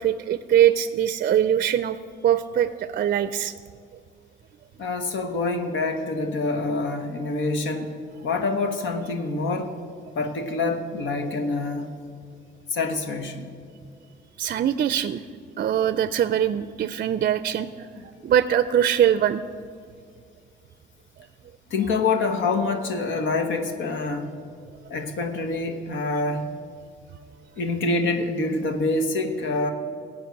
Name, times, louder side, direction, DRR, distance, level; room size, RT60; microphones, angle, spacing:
voice 1, 0.0-2.0 2.2-3.5 7.3-7.4 14.4-15.2 15.6-19.4, right 10 dB, 50° right, 13 dB, 0.4 m, -22 dB
voice 2, 4.8-7.9 8.2-9.7 10.1-11.9 12.7-13.5 21.7-24.3 24.9-26.5 27.6-29.7, left 3 dB, 75° left, 5 dB, 1.2 m, -26 dB
16.0 x 5.4 x 8.2 m, 2.2 s
cardioid pair, 90°, 20 cm